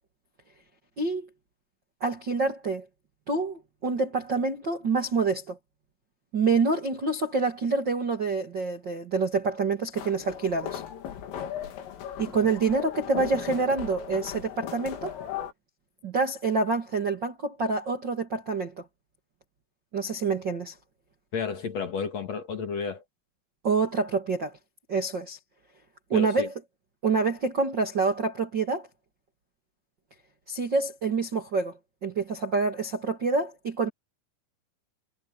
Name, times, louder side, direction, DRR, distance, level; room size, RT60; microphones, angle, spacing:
voice 1, 1.0-1.3 2.0-2.8 3.3-5.6 6.3-10.8 12.2-15.1 16.0-18.8 19.9-20.7 23.6-24.5 24.9-25.4 26.1-26.5 27.0-28.9 30.5-31.7 32.0-33.9, right 4 dB, 75° right, 1.0 m, -27 dB
sound 1, 9.9-15.5, left 10 dB, 75° left, 5.3 m, -37 dB
voice 2, 21.3-23.0 26.1-26.5, left 5 dB, 45° left, 2.5 m, -32 dB
omnidirectional pair, 5.9 m